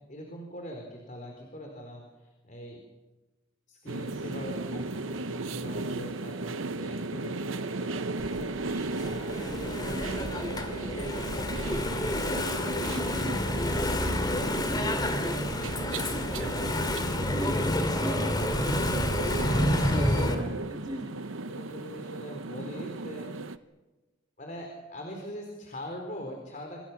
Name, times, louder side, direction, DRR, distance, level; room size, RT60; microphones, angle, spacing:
voice 1, 0.1-2.8 3.7-15.3 15.5-17.7 19.4-20.7 21.5-23.6 24.4-26.8, equal, 40° left, 2 dB, 4.1 m, -43 dB
sound 1, 3.9-23.6, right 3 dB, 85° right, 0.9 m, -36 dB
Engine / Mechanisms, 8.2-20.3, left 1 dB, 20° left, 2.6 m, -29 dB
voice 2, 17.3-18.4 19.8-20.4 20.7-21.3, equal, 20° right, 1 dB, 2.5 m, -38 dB
27.5 x 26.0 x 6.0 m, 1.1 s
head